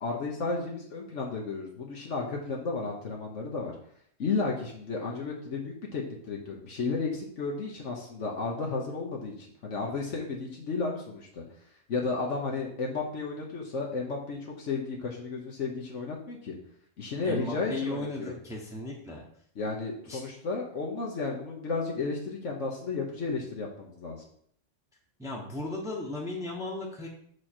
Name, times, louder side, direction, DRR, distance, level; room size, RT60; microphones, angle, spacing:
voice 1, 0.0-3.8 4.2-11.4 11.9-16.5 17.0-18.3 19.6-24.2, left 4 dB, 70° left, -1 dB, 1.3 m, -33 dB
voice 2, 17.2-19.2 20.1-20.2 25.2-27.1, left 2 dB, 5° right, -2 dB, 1.1 m, -35 dB
6.1 x 4.8 x 4.4 m, 0.64 s
omnidirectional pair, 1.3 m